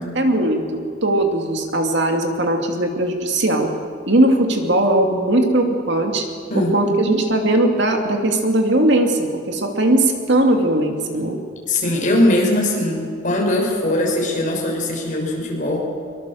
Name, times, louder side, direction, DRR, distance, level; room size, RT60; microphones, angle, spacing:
voice 1, 0.1-3.7 4.1-6.3 6.5-11.4, right 1 dB, 55° right, 3 dB, 2.5 m, -19 dB
voice 2, 6.5-7.2 11.7-15.9, left 1 dB, 40° left, -1 dB, 6.2 m, -21 dB
23.5 x 23.0 x 7.8 m, 2.2 s
head